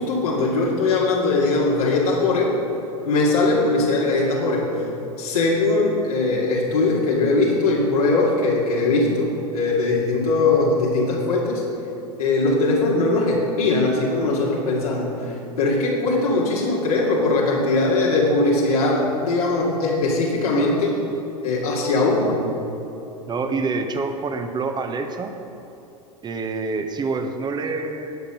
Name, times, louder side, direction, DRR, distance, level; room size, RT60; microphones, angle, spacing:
voice 1, 0.0-2.6 3.1-4.9 5.2-11.6 12.2-21.0 21.4-22.4, left 2 dB, 70° left, -5 dB, 2.4 m, -20 dB
voice 2, 23.3-25.3 26.2-28.2, right 4 dB, 20° right, 6 dB, 1.2 m, -26 dB
19.0 x 7.3 x 5.3 m, 2.9 s
figure-of-eight pair, 85°, 20 cm